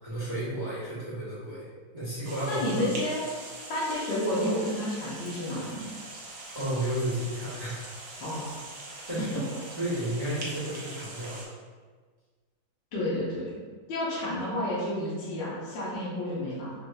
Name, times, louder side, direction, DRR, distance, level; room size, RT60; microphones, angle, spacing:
voice 1, 0.0-2.8 6.5-8.0 9.1-9.4 9.7-11.6, right 1 dB, 25° right, -8 dB, 1.0 m, -32 dB
sound 1, 2.2-11.5, right 2 dB, 60° right, 1.2 m, -42 dB
voice 2, 2.5-3.2 3.7-5.9 8.2-8.5 12.9-13.6 13.9-16.7, left 1 dB, 65° left, -8 dB, 1.4 m, -30 dB
6.4 x 2.5 x 2.3 m, 1.5 s
omnidirectional pair, 2.3 m